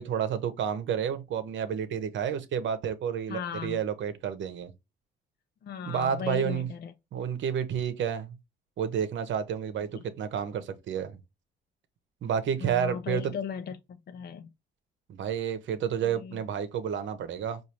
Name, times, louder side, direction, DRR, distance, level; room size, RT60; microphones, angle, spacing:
voice 1, 0.0-4.7 5.9-6.7 7.1-8.4 8.8-11.2 12.2-13.3 15.1-17.6, right 8 dB, 70° right, 0.9 m, -30 dB
voice 2, 3.3-3.8 5.6-6.9 9.9-10.0 12.6-14.5 16.0-16.4, left 7 dB, 55° left, 0.6 m, -37 dB
5.0 x 2.6 x 2.9 m
cardioid pair, 90°, 20 cm